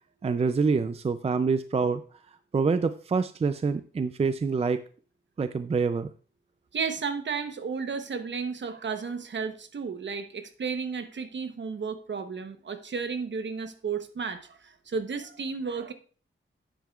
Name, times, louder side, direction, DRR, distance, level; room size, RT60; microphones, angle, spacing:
voice 1, 0.2-2.0 2.5-4.8 5.4-6.1, right 4 dB, 30° right, 11 dB, 0.4 m, -26 dB
voice 2, 6.7-15.9, right 5 dB, 60° right, 9 dB, 0.9 m, -33 dB
9.2 x 8.4 x 2.4 m, 0.40 s
wide cardioid pair, 95°, 21 cm